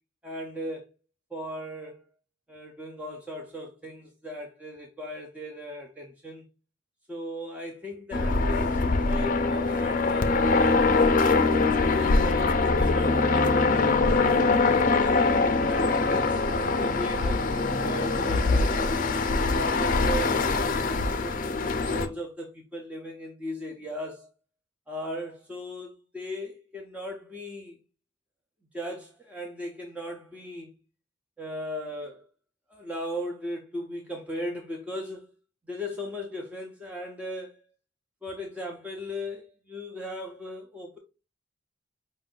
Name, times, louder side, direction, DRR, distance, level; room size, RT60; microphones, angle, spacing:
voice 1, 0.2-0.8 1.3-2.0 2.5-6.4 7.1-10.4 10.9-15.4 15.7-19.0 19.5-20.4 20.8-24.3 24.9-27.8 28.7-30.7 31.4-32.2 32.7-35.3 35.7-37.6 38.2-41.0, equal, 5° right, 0.6 m, -37 dB
sound 1, 8.1-22.1, left 3 dB, 40° left, 0.5 m, -23 dB
5.2 x 2.6 x 3.8 m
head